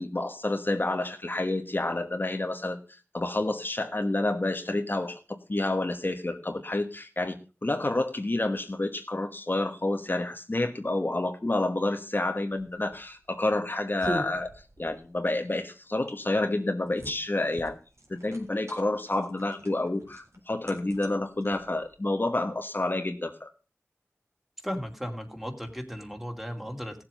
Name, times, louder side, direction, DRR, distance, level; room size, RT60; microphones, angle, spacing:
voice 1, 0.0-2.8 3.1-14.5 14.8-17.8 18.1-23.5, left 2 dB, 45° left, 4 dB, 1.3 m, -29 dB
sound 1, 12.5-22.0, right 1 dB, 75° right, 3.5 m, -43 dB
voice 2, 24.6-27.0, equal, 5° right, 3 dB, 2.6 m, -36 dB
16.5 x 7.5 x 5.3 m, 0.33 s
wide cardioid pair, 55°, 5 cm